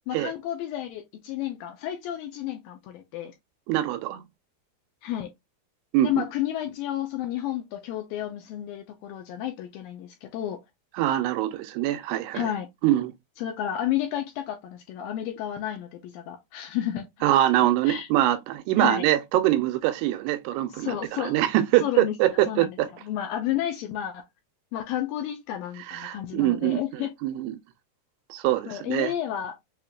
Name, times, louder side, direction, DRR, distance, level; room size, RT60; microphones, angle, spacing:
voice 1, 0.1-3.3 5.0-5.3 6.0-10.6 12.3-12.7 13.4-17.1 17.6-18.1 18.8-19.1 20.7-21.4 21.8-22.2 22.5-24.2 24.7-27.1 28.7-29.6, left 11 dB, 80° left, 2.1 m, -31 dB
voice 2, 3.7-4.2 5.9-6.3 11.0-12.5 12.8-13.1 17.2-22.9 25.9-26.8 27.2-27.6 28.3-29.1, right 14 dB, 85° right, 2.6 m, -24 dB
6.7 x 2.9 x 2.3 m
omnidirectional pair, 4.6 m